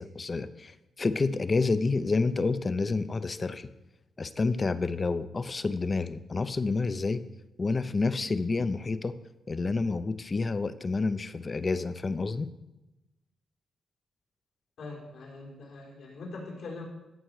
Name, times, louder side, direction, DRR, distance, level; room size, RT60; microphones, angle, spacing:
voice 1, 0.0-3.7 4.2-7.2 7.6-9.1 9.5-12.5, left 3 dB, 35° left, 12 dB, 0.6 m, -29 dB
voice 2, 14.8-16.8, left 3 dB, 85° left, -3 dB, 3.8 m, -42 dB
15.5 x 6.8 x 4.8 m, 1.0 s
cardioid pair, 95°, 0 cm